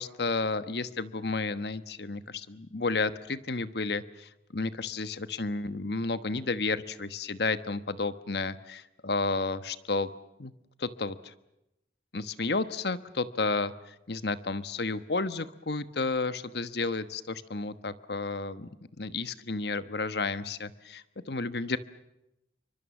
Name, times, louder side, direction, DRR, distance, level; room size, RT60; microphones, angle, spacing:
voice 1, 0.0-10.1 10.4-10.5 10.8-11.3 12.1-18.7 19.0-21.8, left 3 dB, 65° left, 13 dB, 1.2 m, -32 dB
28.0 x 24.5 x 7.2 m, 0.87 s
head